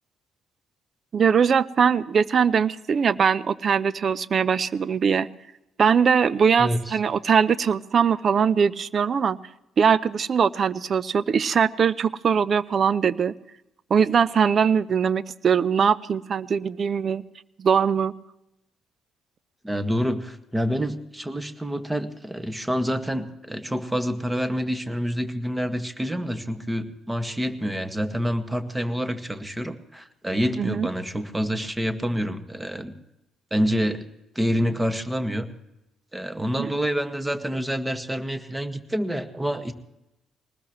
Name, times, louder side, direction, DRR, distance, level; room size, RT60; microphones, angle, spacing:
voice 1, 1.1-5.3 5.8-9.4 9.8-13.3 13.9-17.2 17.6-18.1 30.6-30.9 36.4-36.7, right 6 dB, 50° right, 19 dB, 0.6 m, -21 dB
voice 2, 6.6-7.0 19.6-32.9 33.5-34.0 34.3-35.5 36.1-39.7, equal, 15° right, 8 dB, 1.7 m, -27 dB
22.5 x 19.5 x 3.1 m, 0.88 s
hypercardioid pair, 45°, 0 cm